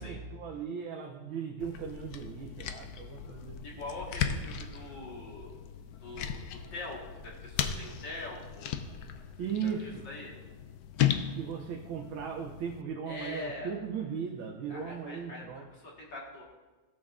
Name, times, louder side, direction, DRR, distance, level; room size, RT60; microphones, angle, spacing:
voice 1, 0.0-3.6 9.4-10.1 11.1-15.7, right 7 dB, 75° right, 1 dB, 1.6 m, -37 dB
sound 1, 1.6-12.8, left 9 dB, 80° left, 0.8 m, -36 dB
voice 2, 3.6-5.6 6.0-8.7 9.6-10.3 13.1-13.7 14.7-16.4, left 2 dB, 60° left, -4 dB, 2.4 m, -43 dB
16.5 x 7.3 x 2.5 m, 1.2 s
omnidirectional pair, 2.3 m